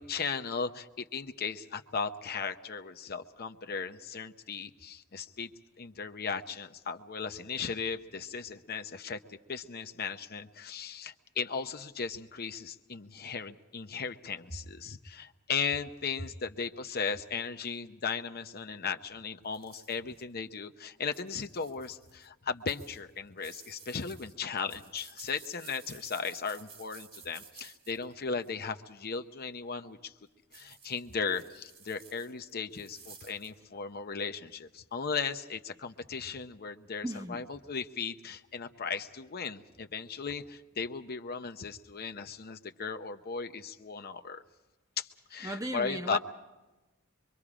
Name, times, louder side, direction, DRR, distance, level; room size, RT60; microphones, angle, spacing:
voice 1, 0.0-5.5 5.8-30.1 30.5-44.4 45.0-46.2, left 5 dB, 45° left, 0.8 m, -37 dB
sound 1, 19.5-20.2 21.0-22.3 22.7-28.6 30.5-33.5, right 6 dB, 45° right, 1.9 m, -54 dB
voice 2, 37.0-37.4 45.4-46.2, right 1 dB, 15° right, 0.9 m, -36 dB
24.5 x 24.5 x 5.0 m
head